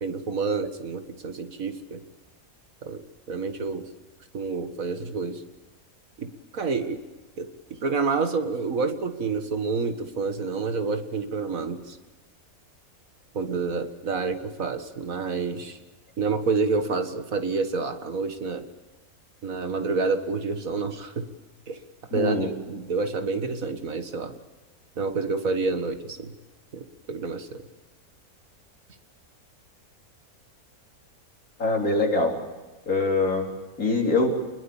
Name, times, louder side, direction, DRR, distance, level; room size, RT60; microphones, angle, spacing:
voice 1, 0.0-2.0 2.8-3.0 3.3-3.8 4.3-5.4 6.2-7.0 7.4-12.0 13.3-15.8 16.2-18.7 19.4-21.3 21.7-21.8 22.1-24.4 25.0-26.3 26.7-26.8 27.1-27.6, right 4 dB, 65° right, 8 dB, 2.1 m, -28 dB
voice 2, 22.1-22.5 31.6-32.3 32.9-33.5 33.8-34.3, left 3 dB, 70° left, 1 dB, 4.3 m, -23 dB
27.5 x 20.5 x 7.2 m, 1.2 s
omnidirectional pair, 1.6 m